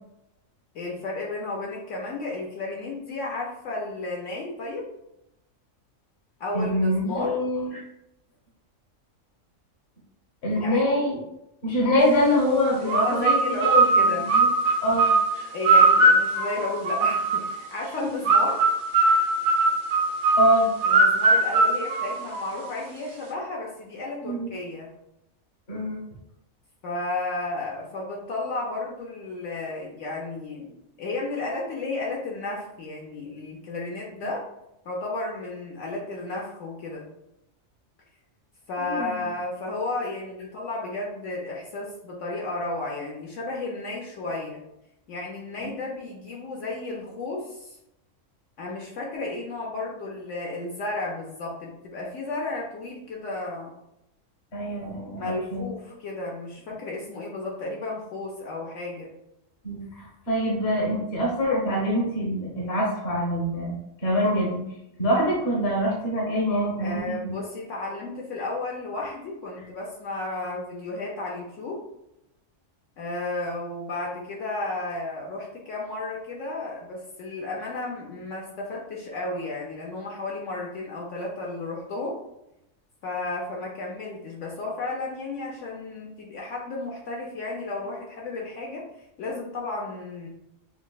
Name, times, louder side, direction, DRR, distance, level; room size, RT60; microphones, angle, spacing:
voice 1, 0.7-4.9 6.4-7.4 10.5-10.8 12.8-14.3 15.5-18.6 20.8-24.9 26.8-34.4 34.8-37.1 38.7-44.6 45.1-47.8 48.6-53.7 55.1-59.1 66.8-71.8 73.0-82.2 83.0-88.8 89.2-90.3, left 2 dB, 65° left, -2 dB, 0.9 m, -33 dB
voice 2, 6.5-7.8 10.4-11.2 11.6-14.5 14.8-15.1 18.0-18.1 19.0-19.1 20.4-20.7 24.2-24.5 25.7-26.0 38.8-39.1 45.6-45.7 54.5-55.7 59.6-63.8 64.0-64.6 65.0-67.4, equal, 50° left, -4 dB, 1.3 m, -25 dB
sound 1, 12.9-17.6 18.3-22.7, right 3 dB, 85° right, 1.0 m, -20 dB
5.7 x 2.1 x 2.3 m, 0.85 s
omnidirectional pair, 1.4 m